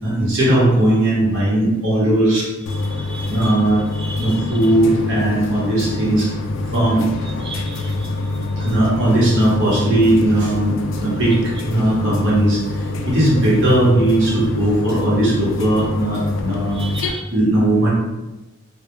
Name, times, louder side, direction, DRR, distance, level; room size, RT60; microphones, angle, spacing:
voice 1, 0.0-2.5 3.3-3.8 4.2-6.3 6.7-7.1 8.6-12.6 13.0-16.8 17.3-17.9, right 1 dB, 75° right, -7 dB, 0.9 m, -17 dB
sound 1, 2.7-17.1, left 2 dB, 70° left, 0.3 m, -25 dB
voice 2, 2.7-3.6 3.9-4.7 7.3-8.7 16.7-17.3, right 3 dB, 25° right, 1 dB, 0.4 m, -36 dB
2.2 x 2.1 x 3.0 m, 1.0 s
head